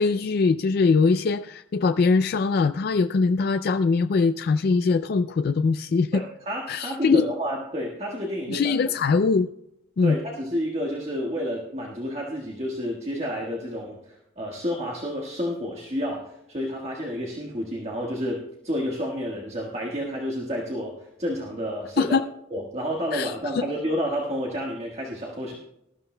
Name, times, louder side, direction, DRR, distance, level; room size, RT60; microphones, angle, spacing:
voice 1, 0.0-6.2 6.7-7.2 8.5-9.5 10.0-10.2 22.0-22.2 23.1-23.6, left 4 dB, 50° left, 9 dB, 0.3 m, -22 dB
voice 2, 6.1-8.9 10.0-22.2 22.5-25.5, equal, 35° right, -2 dB, 1.4 m, -30 dB
19.0 x 12.5 x 2.2 m, 0.81 s
head